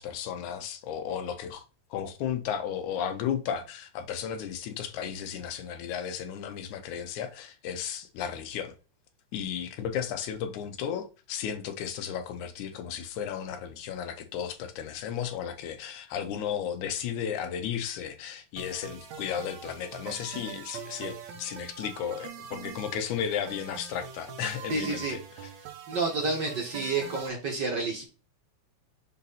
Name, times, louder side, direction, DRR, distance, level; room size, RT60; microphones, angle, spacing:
voice 1, 0.0-1.6 1.9-8.7 9.3-25.5, left 8 dB, 85° left, 2.3 m, -34 dB
sound 1, 18.6-27.3, right 7 dB, 75° right, 2.3 m, -43 dB
voice 2, 24.7-25.2 25.9-28.0, right 3 dB, 45° right, 1.7 m, -29 dB
6.4 x 4.2 x 4.0 m
omnidirectional pair, 3.4 m